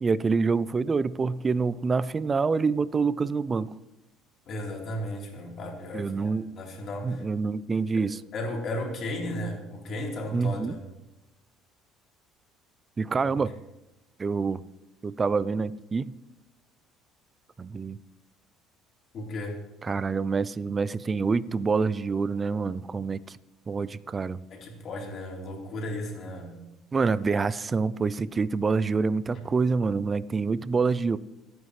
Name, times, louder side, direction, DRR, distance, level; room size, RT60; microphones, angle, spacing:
voice 1, 0.0-3.7 5.9-6.5 7.0-8.2 10.3-10.8 13.0-13.5 14.2-14.6 15.0-16.2 17.6-18.0 19.8-23.4 23.7-24.4 26.9-31.2, right 4 dB, 20° right, 18 dB, 0.4 m, -26 dB
voice 2, 4.5-7.2 7.9-8.0 8.3-10.8 13.2-13.3 19.1-19.6 24.5-26.5, left 1 dB, 45° left, -1 dB, 3.7 m, -35 dB
27.5 x 9.4 x 3.2 m, 0.99 s
cardioid pair, 135°, 0 cm